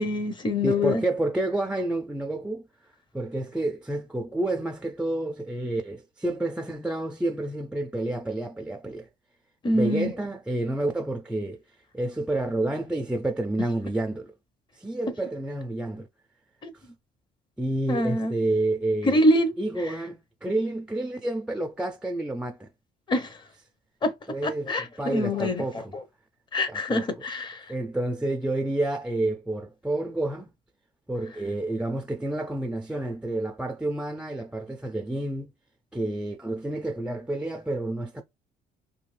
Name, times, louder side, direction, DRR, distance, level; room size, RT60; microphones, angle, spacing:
voice 1, 0.0-1.0 9.6-10.1 16.6-16.7 17.9-18.3 19.0-19.5 23.1-23.3 24.0-24.1 24.4-25.6 26.5-27.6, left 1 dB, 25° left, 0.7 m, -24 dB
voice 2, 0.6-2.7 3.1-9.1 9.7-11.6 11.9-14.3 14.7-16.1 16.7-16.9 17.6-19.2 19.6-22.7 24.3-25.9 26.7-27.1 27.7-30.5 31.1-35.5 35.9-38.2, right 2 dB, 5° right, 0.4 m, -29 dB
2.7 x 2.4 x 3.2 m
cardioid pair, 110°, 17 cm